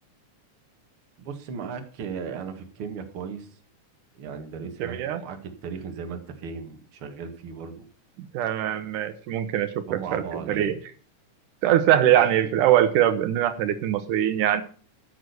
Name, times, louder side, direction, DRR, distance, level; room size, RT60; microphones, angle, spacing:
voice 1, 1.2-3.5 4.2-7.8 9.9-10.7 12.0-12.1, right 6 dB, 50° right, 6 dB, 2.1 m, -36 dB
voice 2, 4.8-5.2 8.3-10.8 11.6-14.6, right 11 dB, 80° right, 11 dB, 2.4 m, -22 dB
14.0 x 6.2 x 6.7 m, 0.42 s
omnidirectional pair, 3.6 m